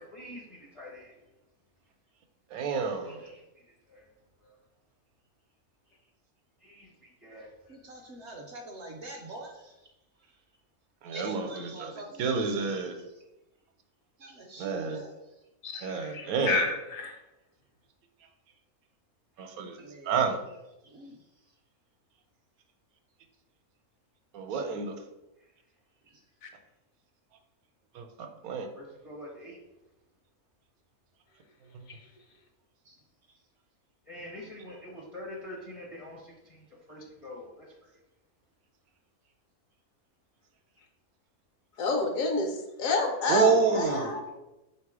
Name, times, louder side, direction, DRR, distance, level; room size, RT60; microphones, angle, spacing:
voice 1, 0.1-1.1 3.2-3.4 3.9-4.0 4.4-4.5 6.6-6.9 7.2-7.5 28.7-29.6 34.1-37.7 43.2-44.3, left 1 dB, 35° left, -2 dB, 0.5 m, -44 dB
voice 2, 2.5-3.3 11.0-11.9 12.2-12.9 14.6-15.0 15.8-16.6 19.4-19.8 20.0-20.4 24.3-24.9 27.9-28.7 31.7-31.9 43.3-44.2, right 5 dB, 80° right, 5 dB, 1.1 m, -29 dB
voice 3, 7.7-9.9 11.1-12.9 14.2-15.4 19.7-20.3 20.8-21.5 26.0-26.2 32.8-33.0 33.3-33.4, right 1 dB, 65° right, 2 dB, 0.7 m, -45 dB
voice 4, 15.6-17.2 26.4-26.5 41.8-44.2, left 3 dB, 70° left, 3 dB, 1.1 m, -29 dB
3.9 x 2.9 x 4.7 m, 0.96 s
omnidirectional pair, 1.6 m